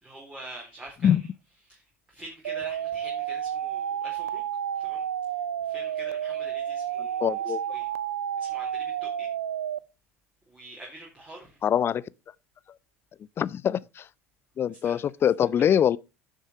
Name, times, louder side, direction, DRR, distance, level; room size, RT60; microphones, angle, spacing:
voice 1, 0.0-1.2 1.7-4.4 4.7-5.0 5.6-7.9 8.4-9.3 10.5-11.6 14.8-14.9 15.6-15.7, right 2 dB, 15° right, 4.2 m, -45 dB
sound 1, 2.4-9.8, right 9 dB, 75° right, 0.6 m, -31 dB
voice 2, 7.2-7.6 11.6-12.0 13.4-14.1 14.6-16.0, left 9 dB, 30° left, 0.5 m, -23 dB
10.5 x 6.5 x 4.7 m
figure-of-eight pair, 75°, 8 cm